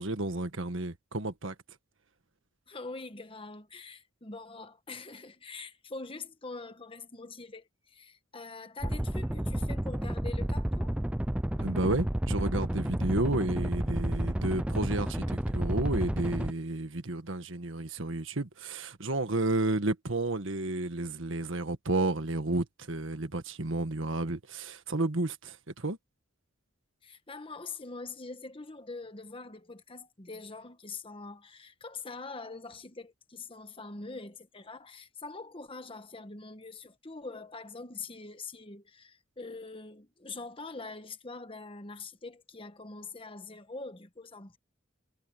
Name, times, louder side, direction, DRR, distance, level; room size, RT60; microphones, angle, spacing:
voice 1, 0.0-1.5 11.6-26.0, right 2 dB, 70° right, 1.6 m, -31 dB
voice 2, 2.7-10.9 27.0-44.6, left 3 dB, 25° left, 1.3 m, -44 dB
sound 1, 8.8-16.5, right 1 dB, 5° right, 0.4 m, -31 dB
head